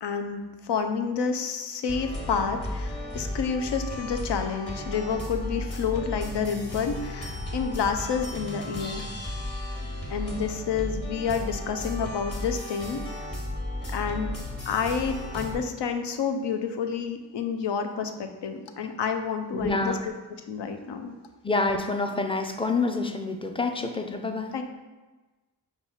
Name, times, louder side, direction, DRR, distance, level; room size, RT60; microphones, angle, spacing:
voice 1, 0.0-9.0 10.1-13.3 13.9-14.3 14.7-20.0 20.5-21.1 24.5-24.6, left 6 dB, 75° left, 6 dB, 0.6 m, -29 dB
sound 1, 1.9-15.5, left 1 dB, 35° left, 1.4 m, -34 dB
voice 2, 19.5-20.0 21.4-24.5, left 3 dB, 15° left, 5 dB, 0.4 m, -27 dB
5.3 x 2.3 x 4.2 m, 1.2 s
cardioid pair, 50°, 42 cm